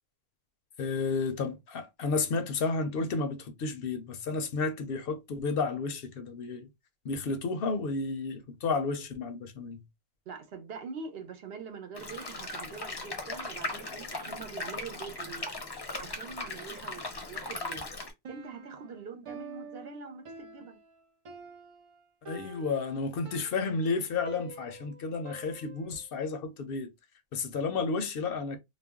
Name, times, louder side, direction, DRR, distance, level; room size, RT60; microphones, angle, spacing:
voice 1, 0.8-6.7 7.0-9.8 22.3-26.9 27.3-28.6, left 4 dB, 70° left, 0.7 m, -32 dB
voice 2, 10.3-15.5 16.0-17.9 18.3-20.8, right 5 dB, 75° right, 0.9 m, -44 dB
sound 1, 12.0-18.1, left 2 dB, 30° left, 0.5 m, -38 dB
Piano, 18.2-26.1, right 3 dB, 50° right, 0.4 m, -47 dB
2.4 x 2.0 x 3.4 m
omnidirectional pair, 1.1 m